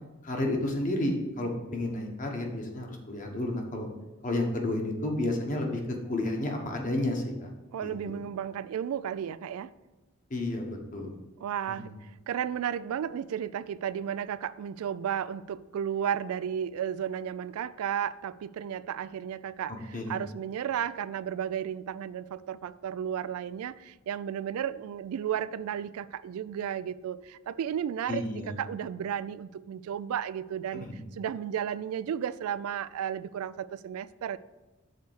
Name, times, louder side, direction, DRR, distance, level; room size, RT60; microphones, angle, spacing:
voice 1, 0.2-3.9 4.2-5.8 6.1-7.5 7.8-8.1 10.3-11.1 11.7-11.9 19.9-20.2 28.1-28.5 30.7-31.0, left 1 dB, 40° left, 1.1 m, -31 dB
voice 2, 7.7-9.7 11.4-34.4, right 9 dB, 90° right, 0.3 m, -33 dB
6.6 x 4.1 x 6.5 m
head